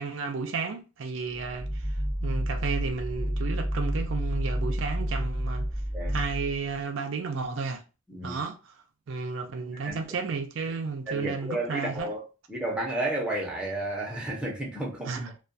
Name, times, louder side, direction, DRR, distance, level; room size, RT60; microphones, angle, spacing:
voice 1, 0.0-1.9 2.2-5.7 6.1-7.8 8.2-8.7 9.1-12.1 15.1-15.3, right 4 dB, 70° right, 0.4 m, -33 dB
sound 1, 1.3-6.8, equal, 35° left, 1.3 m, -30 dB
voice 2, 8.1-8.4 9.8-10.0 11.1-12.2 12.5-15.2, right 1 dB, 5° right, 0.7 m, -32 dB
2.3 x 2.2 x 2.6 m
head